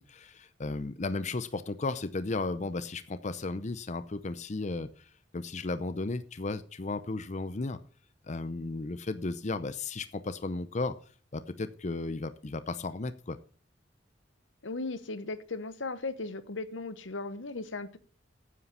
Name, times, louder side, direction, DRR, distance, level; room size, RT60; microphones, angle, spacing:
voice 1, 0.0-7.8 8.2-10.9 11.3-13.4, left 3 dB, 40° left, 12 dB, 0.6 m, -34 dB
voice 2, 14.6-18.0, left 3 dB, 80° left, 13 dB, 1.0 m, -37 dB
9.6 x 8.5 x 7.0 m, 0.42 s
head